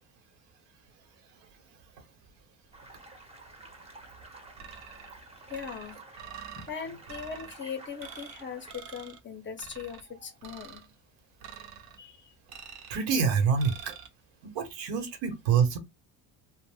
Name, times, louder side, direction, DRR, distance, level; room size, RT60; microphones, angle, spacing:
sound 1, 2.7-8.7, right 2 dB, 15° right, 0.6 m, -51 dB
sound 2, 4.6-5.1 5.5-6.7 7.1-7.5 8.0-8.4 8.7-9.2 9.6-10.0 10.4-10.9 11.4-12.0 12.5-13.0 13.6-14.1, right 7 dB, 60° right, 0.7 m, -46 dB
voice 1, 5.5-6.0 6.6-10.8 12.0-12.3, left 6 dB, 30° left, 0.5 m, -40 dB
voice 2, 12.9-13.9 14.4-15.8, right 6 dB, 80° right, 1.0 m, -26 dB
2.5 x 2.1 x 3.3 m
cardioid pair, 130°, 42 cm